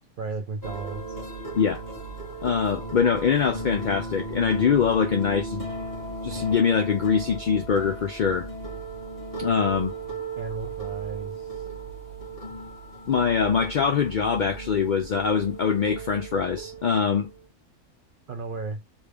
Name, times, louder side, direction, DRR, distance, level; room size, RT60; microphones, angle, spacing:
voice 1, 0.2-1.3 10.3-11.7 18.3-18.8, right 3 dB, 70° right, 0.4 m, -35 dB
sound 1, 0.6-17.4, right 3 dB, 15° left, 1.3 m, -36 dB
voice 2, 2.4-5.7 6.2-8.5 9.4-9.9 13.1-17.3, left 6 dB, 85° left, 0.4 m, -23 dB
3.1 x 2.4 x 3.3 m
omnidirectional pair, 1.4 m